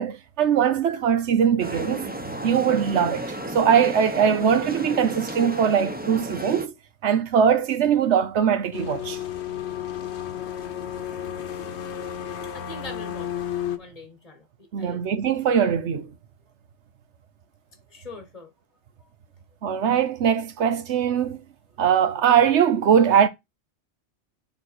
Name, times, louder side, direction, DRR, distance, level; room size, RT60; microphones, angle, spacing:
voice 1, 0.0-2.1 2.4-3.2 3.5-6.7 7.0-9.2 14.7-16.1 19.6-21.4 21.8-23.3, right 8 dB, 80° right, 1.1 m, -21 dB
sound 1, 1.6-6.7, right 1 dB, 10° right, 0.7 m, -33 dB
sound 2, 8.7-13.8, left 10 dB, 75° left, 1.1 m, -32 dB
voice 2, 12.5-13.4 13.8-15.0 17.9-18.5, left 2 dB, 35° left, 1.1 m, -42 dB
7.1 x 3.5 x 4.1 m
omnidirectional pair, 1.2 m